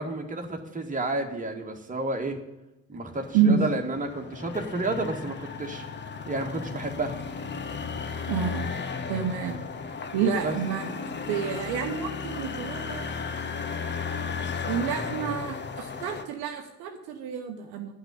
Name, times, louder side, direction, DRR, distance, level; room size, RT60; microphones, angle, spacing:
voice 1, 0.0-2.4 2.9-5.8 6.3-7.3 10.4-10.6, right 2 dB, 20° right, 2 dB, 1.8 m, -31 dB
sound 1, 3.1-16.2, left 5 dB, 25° left, 0.9 m, -35 dB
voice 2, 8.3-8.7 9.1-9.6 10.1-13.2 14.6-17.9, right 7 dB, 60° right, 4 dB, 1.0 m, -28 dB
10.0 x 6.0 x 8.5 m, 0.98 s
figure-of-eight pair, 45°, 42 cm